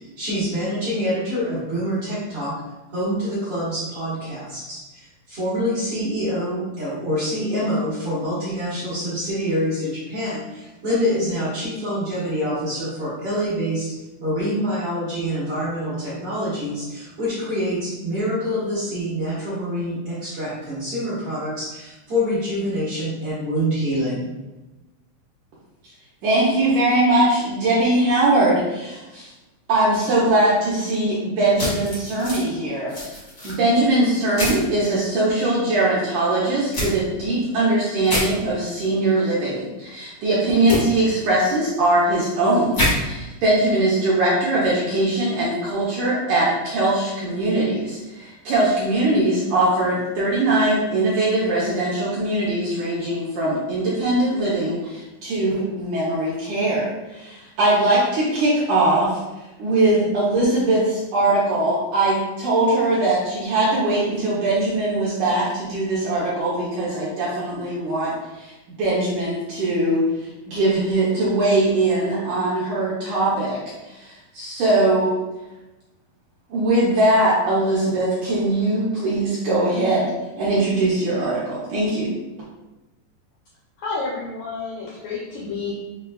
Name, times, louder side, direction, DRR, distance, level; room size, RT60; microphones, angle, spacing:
voice 1, 0.2-2.5 2.9-4.8 5.3-13.9 14.2-24.2, equal, 55° right, -11 dB, 1.6 m, -26 dB
voice 2, 26.2-29.3 29.7-32.9 33.4-59.2 59.6-68.1 68.4-68.5 68.8-70.1 70.5-73.6 73.9-75.1 76.5-82.1, right 2 dB, 75° right, -7 dB, 1.8 m, -21 dB
sound 1, 31.6-32.4 32.9-33.5 34.4-34.6 36.7-36.9 38.0-38.2 40.7-40.8 42.7-42.9, left 1 dB, 60° left, 0.8 m, -24 dB
voice 3, 83.8-85.7, left 4 dB, 85° left, -4 dB, 1.7 m, -30 dB
6.4 x 2.3 x 2.3 m, 1.1 s
omnidirectional pair, 4.2 m